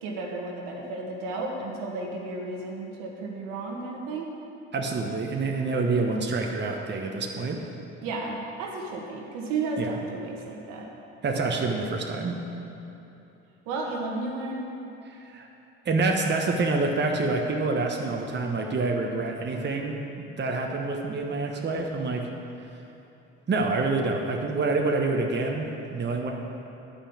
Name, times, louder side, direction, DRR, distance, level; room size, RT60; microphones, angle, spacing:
voice 1, 0.0-4.3 8.0-10.9 13.6-14.6, right 3 dB, 75° right, -1 dB, 1.6 m, -33 dB
voice 2, 4.7-7.6 9.8-10.0 11.2-12.4 15.1-15.5 15.8-22.3 23.5-26.3, right 3 dB, 30° right, 1 dB, 1.1 m, -27 dB
10.0 x 5.7 x 7.2 m, 3.0 s
hypercardioid pair, 60°, 33 cm